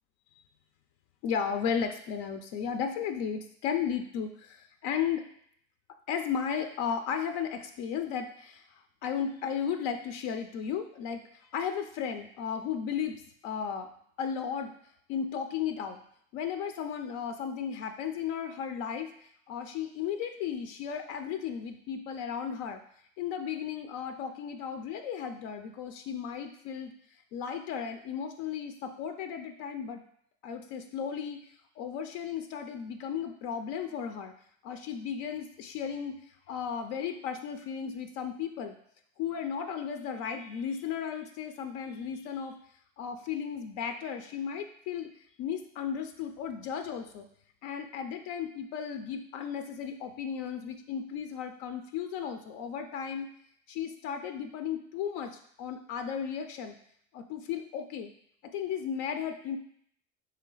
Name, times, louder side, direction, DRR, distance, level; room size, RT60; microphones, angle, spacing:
voice 1, 1.2-5.2 6.1-11.2 11.5-13.9 14.2-14.7 15.1-16.0 16.3-19.1 19.5-22.8 23.2-26.9 27.3-30.0 30.4-31.4 31.8-34.3 34.6-36.2 36.5-38.7 39.2-42.6 43.0-45.1 45.4-47.3 47.6-53.3 53.7-55.3 55.6-56.7 57.1-58.1 58.4-59.6, left 7 dB, 75° left, 6 dB, 0.5 m, -35 dB
3.4 x 3.2 x 3.8 m, 0.66 s
supercardioid pair, 110°, 29 cm